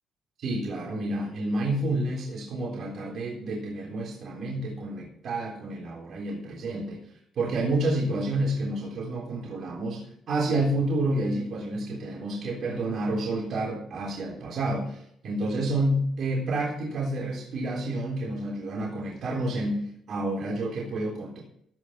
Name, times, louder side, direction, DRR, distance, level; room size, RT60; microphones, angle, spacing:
voice 1, 0.4-21.4, right 1 dB, 65° right, -2 dB, 3.6 m, -29 dB
16.0 x 5.8 x 5.7 m, 0.69 s
cardioid pair, 90°, 0 cm